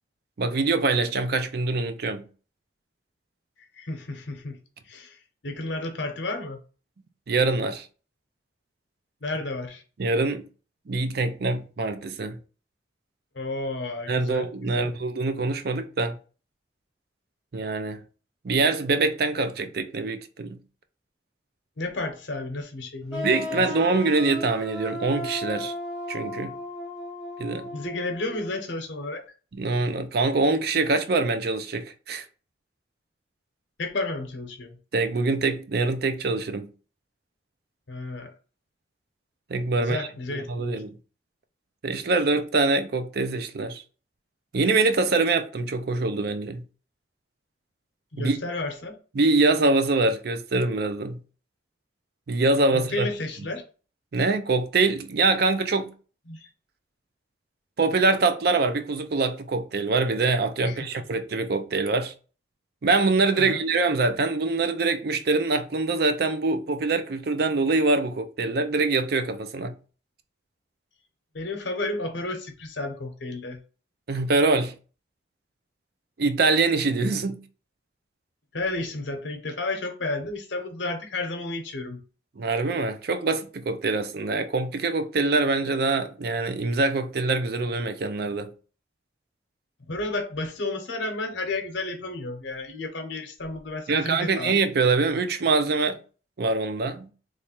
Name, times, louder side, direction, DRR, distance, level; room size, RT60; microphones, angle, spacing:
voice 1, 0.4-2.3 7.3-7.9 10.0-10.4 10.9-12.4 14.1-16.2 17.5-18.0 18.4-20.6 23.2-25.7 26.1-26.5 27.4-27.7 29.5-32.2 34.9-36.7 39.5-41.0 41.8-43.8 44.5-46.6 48.2-48.4 49.2-51.2 52.3-53.1 54.1-55.9 57.8-62.1 62.8-69.8 74.1-74.7 76.2-77.4 82.4-88.5 93.9-96.0 96.4-97.1, right 3 dB, 55° right, 0.5 m, -24 dB
voice 2, 3.7-4.6 4.9-6.6 9.2-9.8 13.3-14.9 21.8-23.9 27.7-29.2 33.8-34.8 37.9-38.3 39.8-40.8 48.1-49.0 52.7-53.6 56.3-56.5 60.7-60.9 63.4-63.6 71.3-73.6 78.5-82.0 89.9-94.6, left 2 dB, 75° left, 0.8 m, -32 dB
sound 1, 23.1-28.6, left 1 dB, 5° right, 0.9 m, -35 dB
3.2 x 2.4 x 4.2 m
head